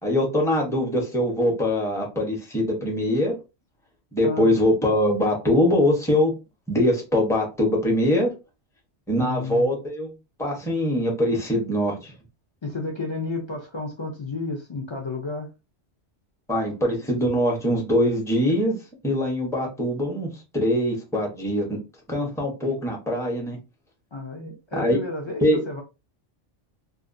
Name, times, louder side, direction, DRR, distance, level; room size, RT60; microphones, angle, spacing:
voice 1, 0.0-3.3 4.1-6.4 6.7-8.3 9.1-10.1 10.4-12.1 16.5-18.8 19.0-21.8 22.1-23.6 24.8-25.0 25.4-25.6, left 1 dB, 5° left, 0 dB, 0.6 m, -23 dB
voice 2, 4.2-4.5 9.2-9.7 12.6-15.5 24.1-25.8, left 3 dB, 50° left, 1 dB, 0.3 m, -32 dB
2.5 x 2.4 x 2.5 m, 0.27 s
omnidirectional pair, 1.2 m